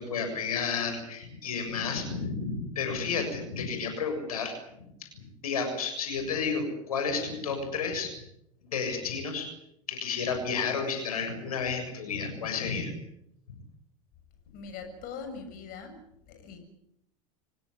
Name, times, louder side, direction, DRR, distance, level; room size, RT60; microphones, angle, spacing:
voice 1, 0.0-4.5 5.0-5.1 5.4-8.1 8.6-9.5 9.9-12.9, left 5 dB, 80° left, 6 dB, 7.1 m, -31 dB
voice 2, 14.5-16.0 16.3-16.6, left 5 dB, 50° left, 7 dB, 7.1 m, -41 dB
27.0 x 17.0 x 9.8 m, 0.78 s
hypercardioid pair, 90°, 18 cm